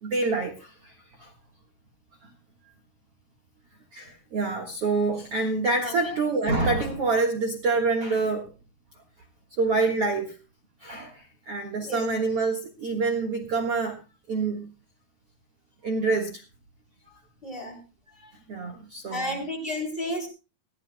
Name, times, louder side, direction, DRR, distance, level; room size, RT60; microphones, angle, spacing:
voice 1, 0.0-1.3 3.9-8.5 9.6-10.4 10.8-14.0 14.3-14.7 15.8-16.4 18.2-19.4, right 3 dB, 50° right, 2.1 m, -27 dB
voice 2, 5.8-6.2 11.8-12.1 17.4-17.8 19.1-20.3, left 1 dB, 15° left, 3.9 m, -32 dB
20.5 x 15.5 x 2.2 m
omnidirectional pair, 4.2 m